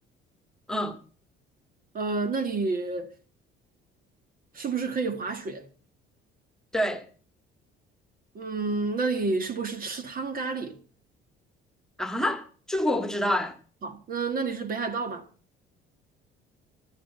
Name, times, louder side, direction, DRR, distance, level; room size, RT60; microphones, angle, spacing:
voice 1, 1.9-3.1 4.5-5.7 8.3-10.8 13.8-15.3, right 4 dB, 45° right, 1.6 m, -29 dB
voice 2, 6.7-7.0 12.0-13.6, left 1 dB, 5° left, 1.7 m, -27 dB
13.0 x 7.5 x 8.0 m
cardioid pair, 105°, 21 cm